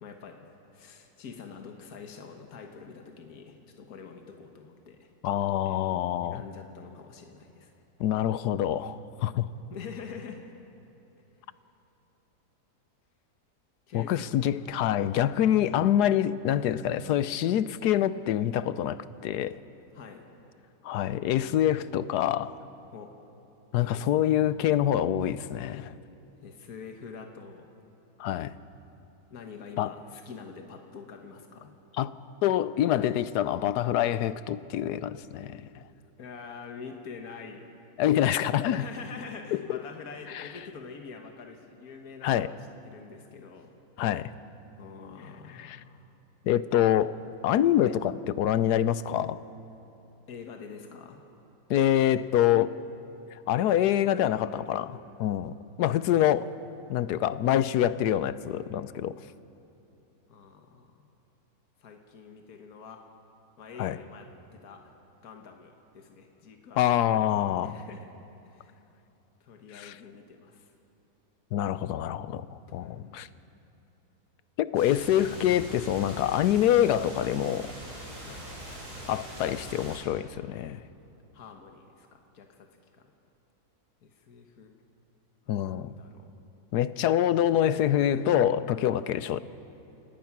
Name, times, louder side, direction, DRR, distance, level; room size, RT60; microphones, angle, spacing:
voice 1, 0.0-5.8 6.2-7.7 9.7-10.4 13.9-14.4 19.9-20.2 22.9-23.1 23.8-24.3 26.4-27.7 29.3-31.7 36.2-37.6 38.7-42.6 42.8-43.7 44.8-46.1 50.3-51.2 60.3-61.1 61.8-63.0 63.6-64.8 65.2-66.8 67.6-68.1 68.4-68.7 69.4-70.7 72.8-73.2 78.2-78.5 81.3-82.7 82.9-83.1 84.0-84.7 85.6-86.3, left 5 dB, 70° left, 1.8 m, -45 dB
voice 2, 5.2-6.4 8.0-9.5 13.9-19.6 20.8-22.5 23.7-25.9 28.2-28.5 29.8-29.9 32.0-32.1 32.4-35.7 38.0-38.8 39.5-39.8 40.3-40.4 42.2-42.5 44.0-44.3 45.6-45.8 46.5-47.2 47.4-49.4 51.7-52.7 53.5-56.5 56.9-59.1 63.8-64.0 66.8-67.8 69.7-69.9 71.5-72.4 72.7-73.3 74.6-77.7 79.1-80.8 85.5-85.9 86.7-89.4, left 11 dB, 85° left, 1.2 m, -26 dB
sound 1, 74.7-80.0, equal, 80° right, 6.5 m, -42 dB
28.0 x 18.0 x 6.0 m
omnidirectional pair, 1.7 m